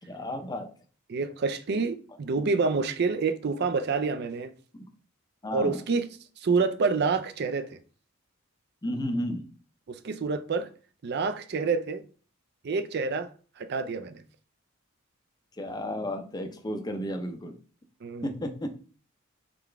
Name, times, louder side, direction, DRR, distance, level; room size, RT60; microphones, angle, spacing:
voice 1, 0.0-0.7 2.4-2.5 4.7-4.9 5.4-5.8 8.8-9.5 15.5-17.6 18.2-18.7, equal, 20° left, 0.5 m, -33 dB
voice 2, 1.1-4.5 5.5-6.1 6.4-7.8 9.9-10.7 11.0-12.0 12.6-13.3 13.6-14.2 18.0-18.3, right 4 dB, 55° right, 0.4 m, -28 dB
3.8 x 3.5 x 3.3 m
head